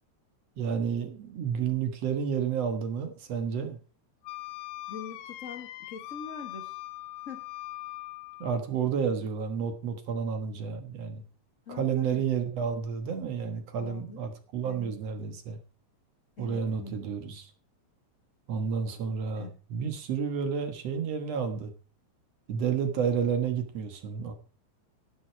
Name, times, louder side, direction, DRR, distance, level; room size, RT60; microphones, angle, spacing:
voice 1, 0.6-3.8 8.4-11.2 11.7-15.6 16.4-17.5 18.5-21.7 22.5-24.3, right 7 dB, 65° right, 2.4 m, -31 dB
Wind instrument woodwind instrument, 4.2-8.6, left 17 dB, 85° left, 2.2 m, -41 dB
voice 2, 4.9-6.8 7.3-7.5 11.7-12.2 13.8-14.2 14.6-14.9 16.4-17.0 18.9-19.5, left 5 dB, 55° left, 0.8 m, -43 dB
11.0 x 10.0 x 4.6 m
omnidirectional pair, 3.3 m